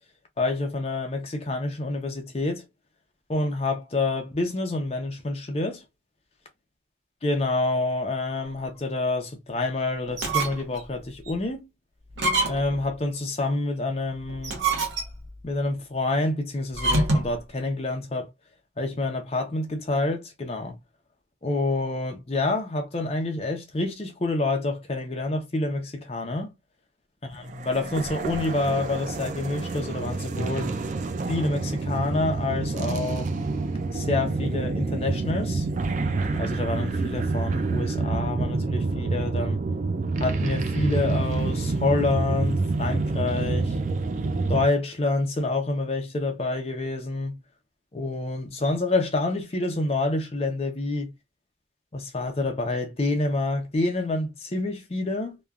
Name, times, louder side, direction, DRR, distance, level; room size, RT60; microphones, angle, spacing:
voice 1, 0.4-2.6 3.3-5.8 7.2-11.7 12.5-14.6 15.4-18.3 18.8-20.8 21.4-26.5 27.2-30.7 31.3-33.3 33.9-35.7 36.3-39.6 40.2-43.8 44.5-47.4 47.9-51.1 51.9-55.4, left 2 dB, 35° left, 0.6 m, -27 dB
sound 1, 10.1-10.8 11.3-11.4 12.1-12.8 14.3-15.3 16.7-17.4, right 2 dB, 80° right, 0.9 m, -25 dB
sound 2, 27.5-44.7, right 3 dB, 40° right, 0.3 m, -27 dB
3.0 x 2.3 x 2.3 m
head